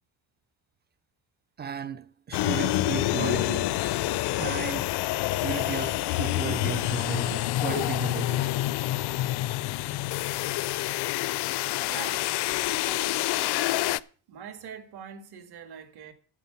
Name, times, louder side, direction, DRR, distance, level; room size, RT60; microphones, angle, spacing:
voice 1, 1.6-3.7 4.4-4.9 5.4-8.5, right 7 dB, 25° right, 0.4 m, -34 dB
sound 1, 2.3-14.0, left 16 dB, 70° left, 0.5 m, -27 dB
voice 2, 11.9-12.4 12.7-13.2 14.3-16.1, right 7 dB, 65° right, 1.9 m, -43 dB
9.7 x 7.8 x 7.1 m
cardioid pair, 155°, 42 cm